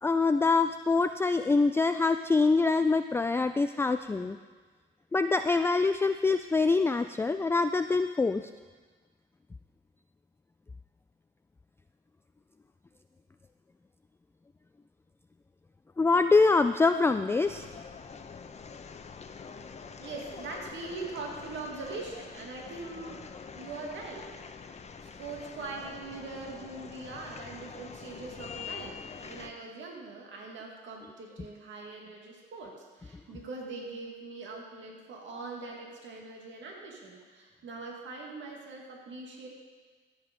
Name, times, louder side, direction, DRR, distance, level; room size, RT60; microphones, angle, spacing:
voice 1, 0.0-4.4 5.1-8.5 16.0-17.6, left 3 dB, 10° left, 9 dB, 0.3 m, -25 dB
sound 1, 17.4-29.5, left 5 dB, 35° left, 0.8 m, -45 dB
voice 2, 20.0-23.2 23.6-24.3 25.0-29.0 29.2-39.5, right 3 dB, 70° right, 0 dB, 2.1 m, -42 dB
13.5 x 8.1 x 5.2 m, 1.4 s
cardioid pair, 90°, 20 cm